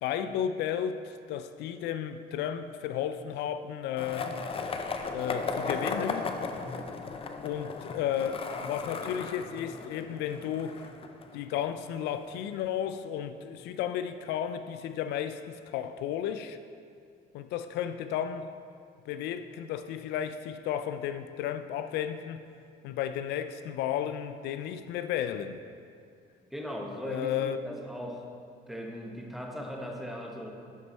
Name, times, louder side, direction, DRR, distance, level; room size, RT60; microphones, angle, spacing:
voice 1, 0.0-4.3 5.1-6.3 7.4-10.9 11.3-16.6 17.3-18.5 19.1-22.4 22.8-25.6 27.1-27.6, left 9 dB, 85° left, 10 dB, 0.4 m, -33 dB
Skateboard, 4.0-11.9, left 4 dB, 35° left, 0.6 m, -36 dB
voice 2, 26.5-28.3 28.7-30.5, equal, ahead, 0 dB, 1.0 m, -38 dB
11.5 x 4.6 x 4.2 m, 2.4 s
cardioid pair, 110°, 17 cm